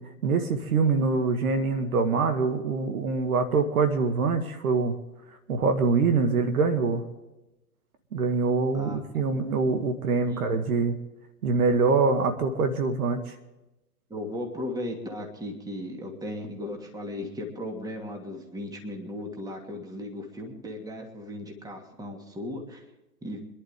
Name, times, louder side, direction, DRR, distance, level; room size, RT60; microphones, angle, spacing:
voice 1, 0.2-5.0 5.5-7.0 8.1-11.0 11.4-13.3, right 4 dB, 60° right, 7 dB, 2.1 m, -24 dB
voice 2, 14.1-22.8 23.2-23.4, left 1 dB, 10° right, 2 dB, 2.7 m, -36 dB
26.0 x 11.5 x 3.8 m, 0.98 s
hypercardioid pair, 120°, 47 cm